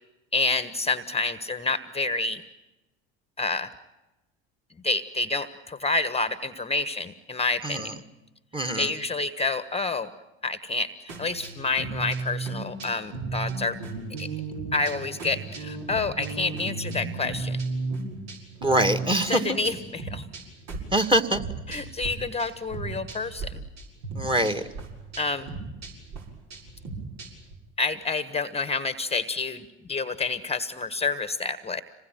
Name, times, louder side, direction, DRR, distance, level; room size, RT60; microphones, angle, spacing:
voice 1, 0.3-2.4 3.4-3.7 4.8-8.0 8.8-10.1 10.4-13.8 14.2-14.3 14.7-17.6 19.3-20.2 21.7-23.6 25.2-25.5 27.8-31.8, left 3 dB, 20° left, 13 dB, 1.3 m, -28 dB
voice 2, 8.5-8.9 18.6-19.4 20.9-21.4 24.2-24.6, right 1 dB, 15° right, 7 dB, 2.0 m, -23 dB
sound 1, 11.1-22.1 22.4-23.5 23.8-27.5, right 3 dB, 70° right, 6.9 m, -35 dB
26.5 x 20.0 x 9.2 m, 1.0 s
hypercardioid pair, 85°, 34 cm